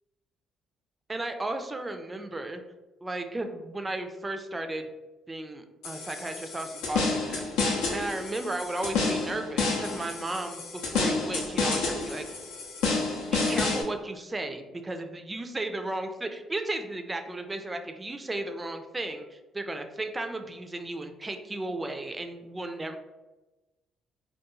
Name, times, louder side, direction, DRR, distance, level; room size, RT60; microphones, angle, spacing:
voice 1, 1.1-2.6 3.0-4.9 5.3-7.4 7.9-12.2 13.3-23.0, right 2 dB, 25° right, 7 dB, 0.4 m, -34 dB
sound 1, 5.8-13.8, left 3 dB, 80° left, 0.5 m, -29 dB
2.3 x 2.3 x 2.9 m, 1.1 s
hypercardioid pair, 55°, 0 cm